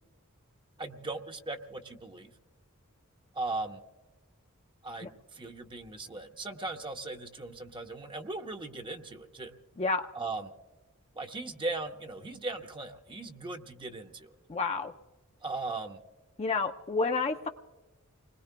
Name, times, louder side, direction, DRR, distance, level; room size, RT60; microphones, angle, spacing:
voice 1, 0.8-2.3 3.3-3.8 4.8-9.5 10.1-10.5 11.1-14.3 15.4-16.0, right 2 dB, 25° right, 4 dB, 0.9 m, -38 dB
voice 2, 14.5-14.9 16.4-17.5, left 4 dB, 30° left, 5 dB, 0.6 m, -29 dB
30.0 x 21.0 x 2.2 m, 1.2 s
head